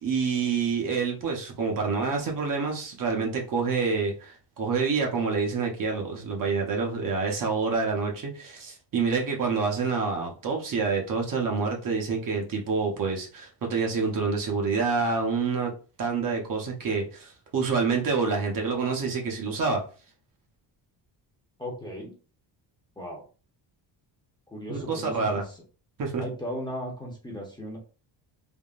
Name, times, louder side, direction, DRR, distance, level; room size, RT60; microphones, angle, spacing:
voice 1, 0.0-15.7 16.0-19.8 24.7-25.4 26.0-26.2, right 5 dB, 45° right, 0.8 m, -27 dB
voice 2, 21.6-22.1 23.0-23.2 24.5-25.5 26.2-27.8, equal, 10° left, 0.7 m, -36 dB
3.5 x 2.2 x 2.4 m
cardioid pair, 140°, 45 cm